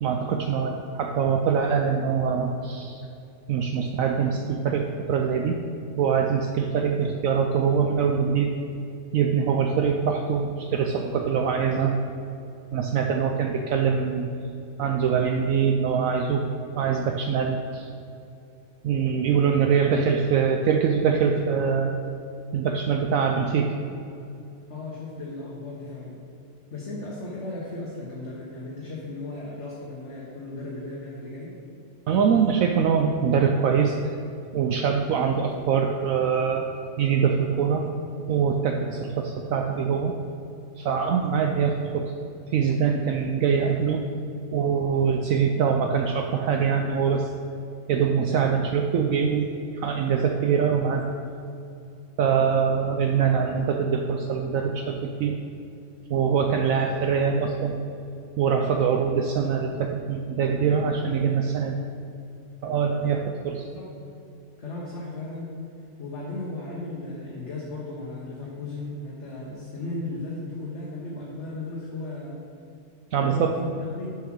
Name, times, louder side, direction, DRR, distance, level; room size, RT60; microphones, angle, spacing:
voice 1, 0.0-3.0 3.5-5.6 6.0-8.5 9.1-12.0 12.7-14.3 14.8-16.4 16.8-17.9 18.8-21.9 22.5-23.7 32.1-34.0 34.5-36.7 37.0-37.8 38.3-40.1 40.8-42.1 42.5-44.0 44.5-47.3 47.9-51.1 52.2-55.4 56.1-57.8 58.4-61.8 62.6-63.7 73.1-73.4, right 6 dB, 70° right, 3 dB, 0.9 m, -23 dB
voice 2, 13.1-13.4 24.7-26.2 26.7-31.5 63.0-63.4 63.7-63.9 64.6-65.5 66.0-72.4 73.2-74.2, left 2 dB, 50° left, -5 dB, 1.5 m, -36 dB
7.5 x 6.1 x 6.1 m, 2.7 s
omnidirectional pair, 1.6 m